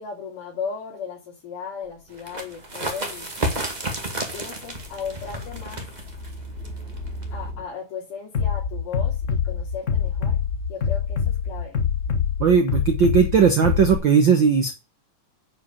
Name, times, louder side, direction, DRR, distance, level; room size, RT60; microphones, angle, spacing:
voice 1, 0.0-3.3 4.3-5.9 7.3-10.4 10.7-11.8, left 6 dB, 75° left, -6 dB, 4.9 m, -36 dB
sound 1, 1.9-7.7, left 1 dB, 35° left, 2.3 m, -38 dB
sound 2, 2.1-7.5, right 1 dB, 20° right, 1.3 m, -32 dB
Bass drum, 8.3-14.0, left 7 dB, 50° left, 0.8 m, -24 dB
voice 2, 12.4-14.7, right 6 dB, 70° right, 5 dB, 1.1 m, -18 dB
9.9 x 5.2 x 7.0 m, 0.29 s
omnidirectional pair, 3.7 m